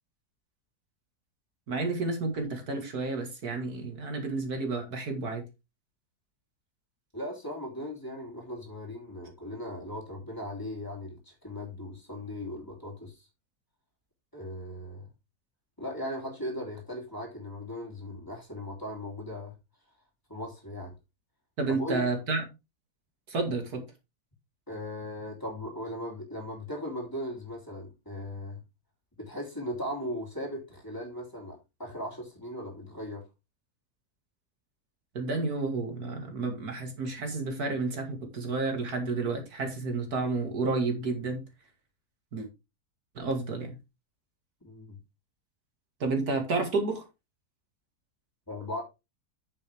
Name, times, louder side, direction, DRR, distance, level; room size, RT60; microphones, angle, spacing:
voice 1, 1.7-5.4 21.6-22.5 23.3-23.8 35.1-41.4 42.3-42.5 43.2-43.8 46.0-47.0, right 3 dB, 70° right, 4 dB, 2.4 m, -31 dB
voice 2, 7.1-13.3 14.3-15.0 15.8-19.5 20.3-20.9 21.7-22.1 24.7-28.6 29.2-33.2 44.6-45.0 48.5-48.8, left 1 dB, 10° left, -3 dB, 3.2 m, -38 dB
8.5 x 7.7 x 3.4 m, 0.25 s
omnidirectional pair, 1.7 m